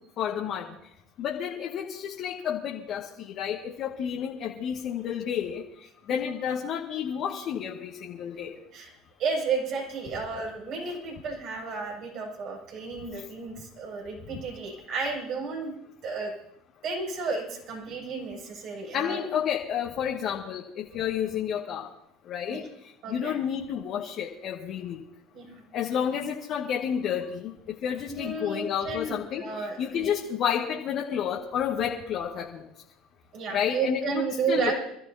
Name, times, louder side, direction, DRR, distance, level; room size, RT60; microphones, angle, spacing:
voice 1, 0.2-0.7 1.2-5.6 6.1-8.5 18.9-21.9 22.3-22.6 23.1-25.0 25.7-29.4 29.8-32.6 33.5-34.7, left 8 dB, 55° left, -2 dB, 2.1 m, -30 dB
voice 2, 9.2-15.7 16.0-16.3 16.8-19.3 22.5-22.6 23.0-23.4 25.3-25.6 28.1-30.1 33.3-34.8, right 4 dB, 55° right, -1 dB, 7.8 m, -32 dB
27.5 x 14.0 x 2.9 m, 0.76 s
hypercardioid pair, 80°, 0 cm